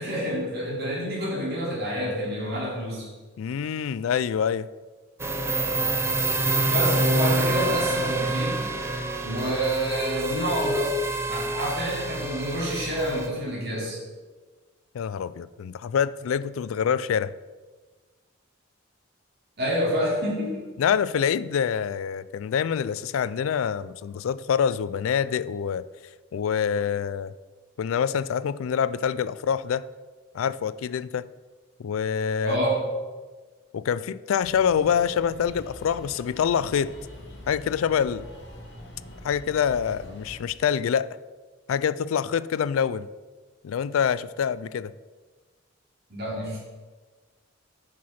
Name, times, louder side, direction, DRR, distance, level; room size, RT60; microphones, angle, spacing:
voice 1, 0.0-3.1 6.7-8.7 9.2-10.9 11.3-14.0 19.6-20.7 32.4-32.8 46.1-46.6, equal, 55° right, -7 dB, 2.8 m, -28 dB
voice 2, 3.4-4.7 14.9-17.3 20.8-25.8 26.3-27.3 27.8-29.8 30.3-31.3 31.8-32.6 33.7-36.9 37.5-38.3 39.2-41.2 41.7-43.1 43.6-44.9, left 7 dB, 90° left, 17 dB, 0.3 m, -26 dB
sound 1, 5.2-13.3, right 2 dB, 15° right, 0.6 m, -26 dB
sound 2, 34.4-40.4, left 1 dB, 55° left, 1.8 m, -44 dB
7.5 x 6.0 x 5.6 m, 1.4 s
head